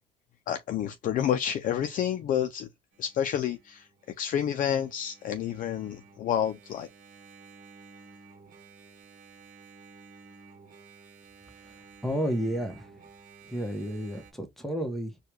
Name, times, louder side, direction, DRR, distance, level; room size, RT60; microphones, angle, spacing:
voice 1, 0.5-2.7 3.0-3.9 4.2-6.9, left 9 dB, 55° left, 0.4 m, -29 dB
Engine, 2.9-14.3, right 4 dB, 55° right, 1.0 m, -54 dB
voice 2, 11.6-12.9 13.4-15.2, equal, ahead, 1.0 m, -32 dB
4.5 x 2.3 x 3.0 m
cardioid pair, 110°, 17 cm